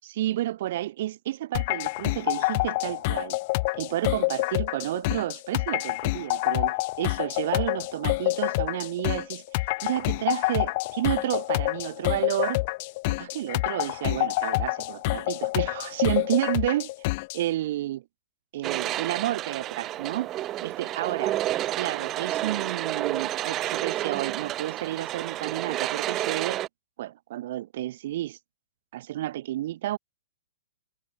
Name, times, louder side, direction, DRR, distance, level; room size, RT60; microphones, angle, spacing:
voice 1, 0.0-3.4 3.7-9.4 9.8-12.6 13.1-16.9 17.3-18.0 18.5-20.3 20.6-21.4 21.8-26.7 27.0-28.4 28.9-30.0, right 14 dB, 55° right, 5.4 m, -31 dB
sound 1, 1.5-17.4, left 23 dB, 45° left, 3.5 m, -27 dB
sound 2, 18.6-26.7, right 14 dB, 30° right, 3.8 m, -30 dB
hypercardioid pair, 130°, 0 cm